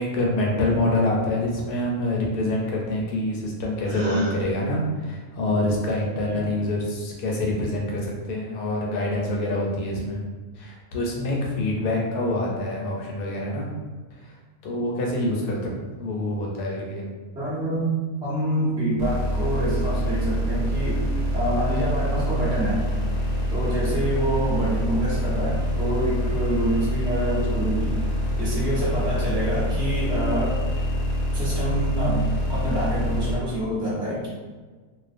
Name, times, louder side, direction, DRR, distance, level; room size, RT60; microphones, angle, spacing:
voice 1, 0.0-10.2 10.6-13.7 14.6-15.6 16.0-17.0, left 1 dB, 85° left, -2 dB, 1.2 m, -26 dB
Gasp, 3.8-4.4, right 1 dB, 70° right, 0.3 m, -27 dB
voice 2, 17.3-17.9 18.2-21.0 21.3-22.9 23.5-28.0 28.4-30.6 31.3-34.3, right 1 dB, 5° right, -9 dB, 0.5 m, -26 dB
sound 1, 19.0-33.4, equal, 45° left, 0.8 m, -25 dB
2.4 x 2.3 x 2.4 m, 1.4 s
omnidirectional pair, 1.6 m